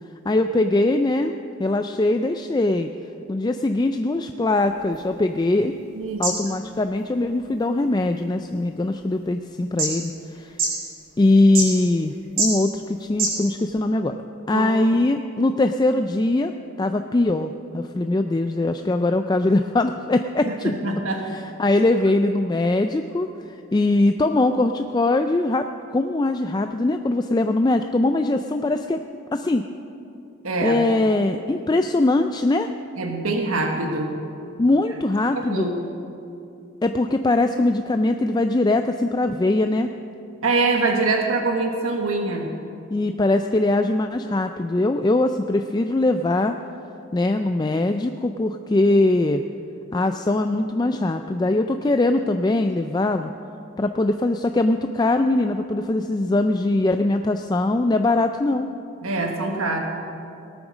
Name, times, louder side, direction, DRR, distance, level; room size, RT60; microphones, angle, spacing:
voice 1, 0.3-1.3 1.6-2.9 3.3-5.8 6.2-10.6 11.2-14.2 14.5-16.5 16.8-20.7 21.3-29.0 29.3-29.6 30.6-32.7 34.6-35.7 36.8-39.9 42.9-46.5 47.1-49.4 49.9-53.3 53.8-58.7, left 2 dB, 20° left, 7 dB, 0.3 m, -21 dB
sound 1, 4.5-13.8, right 3 dB, 45° right, 3.8 m, -31 dB
voice 2, 5.9-6.3 14.5-14.7 20.6-21.3 30.4-30.8 33.0-34.1 35.5-35.8 40.4-42.5 59.0-59.8, right 3 dB, 85° right, 2 dB, 1.4 m, -24 dB
18.5 x 8.8 x 6.2 m, 2.7 s
head